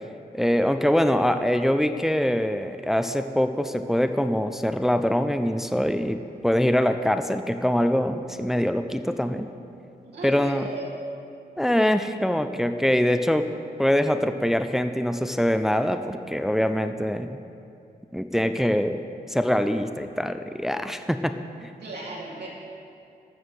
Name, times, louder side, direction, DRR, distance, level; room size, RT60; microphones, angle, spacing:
voice 1, 0.3-9.5 10.2-10.7 11.6-13.5 13.8-17.4 18.1-21.3 21.6-21.7, equal, ahead, 8 dB, 0.5 m, -24 dB
voice 2, 10.0-10.8 21.8-22.5, right 3 dB, 85° right, -5 dB, 2.9 m, -36 dB
13.0 x 7.2 x 6.2 m, 2.5 s
cardioid pair, 85°, 17 cm